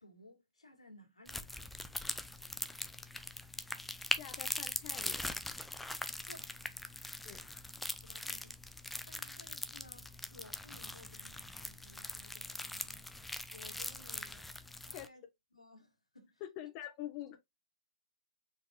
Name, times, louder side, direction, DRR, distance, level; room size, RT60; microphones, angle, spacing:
voice 1, 0.0-1.6 6.3-6.6 8.0-8.6 9.1-13.1 13.5-14.5 14.9-15.2 15.5-16.4, left 2 dB, 85° left, 1.7 m, -58 dB
sound 1, 1.3-15.1, left 2 dB, 5° left, 0.5 m, -42 dB
voice 2, 4.0-5.3 7.2-7.5 14.9-15.1 16.4-17.4, left 12 dB, 35° left, 1.0 m, -46 dB
4.8 x 4.1 x 2.3 m
figure-of-eight pair, 115°, 3 cm